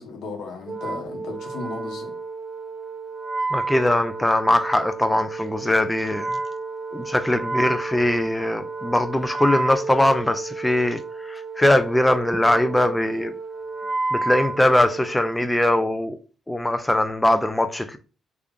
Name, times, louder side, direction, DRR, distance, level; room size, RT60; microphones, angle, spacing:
voice 1, 0.0-2.1, left 3 dB, 75° left, 1.0 m, -35 dB
Wind instrument woodwind instrument, 0.7-15.4, right 3 dB, 40° right, 0.5 m, -31 dB
voice 2, 3.5-6.3 6.9-13.3 14.1-16.2 16.5-18.0, left 1 dB, 10° left, 0.4 m, -21 dB
3.4 x 2.4 x 3.6 m
cardioid pair, 90°, 0 cm